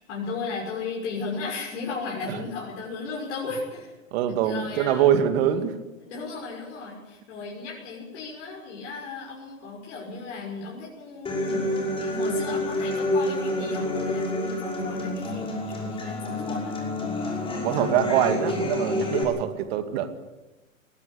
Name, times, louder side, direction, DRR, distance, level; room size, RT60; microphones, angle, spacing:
voice 1, 0.0-3.9 4.4-5.1 6.0-16.8, left 4 dB, 55° left, -3 dB, 6.2 m, -35 dB
voice 2, 4.1-5.8 17.6-20.1, right 10 dB, 45° right, 8 dB, 2.6 m, -24 dB
Human voice / Acoustic guitar, 11.2-19.2, left 1 dB, 15° left, 5.6 m, -28 dB
20.0 x 16.0 x 8.6 m, 1.1 s
hypercardioid pair, 120°, 41 cm